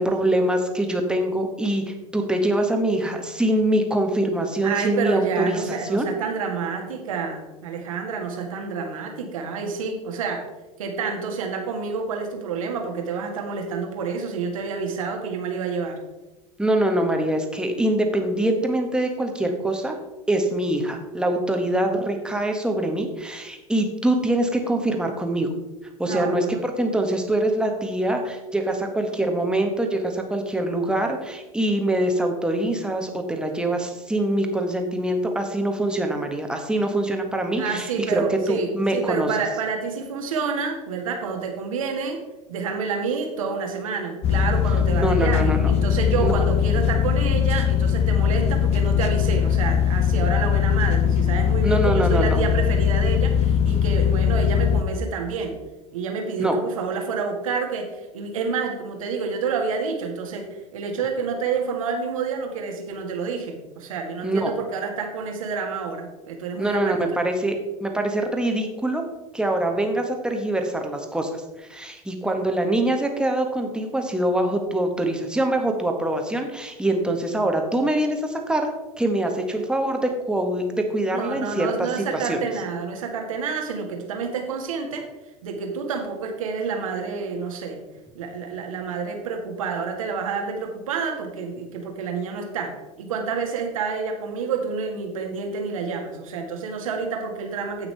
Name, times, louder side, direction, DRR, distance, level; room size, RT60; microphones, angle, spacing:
voice 1, 0.0-5.6 5.9-6.1 16.6-20.0 20.3-25.5 26.0-39.3 45.0-45.7 46.2-46.5 51.6-52.4 56.4-56.6 64.2-64.5 66.6-69.0 69.3-78.7 79.0-82.4, right 1 dB, 5° right, 3 dB, 1.5 m, -24 dB
voice 2, 4.6-10.4 10.8-16.0 26.0-26.5 37.6-42.2 42.5-55.5 55.9-60.5 60.7-66.9 81.1-85.0 85.4-87.8 88.1-97.9, right 5 dB, 65° right, 3 dB, 1.9 m, -28 dB
sound 1, 44.2-54.8, left 8 dB, 35° left, 0.7 m, -20 dB
16.5 x 5.9 x 3.4 m, 1.1 s
figure-of-eight pair, 80°, 18 cm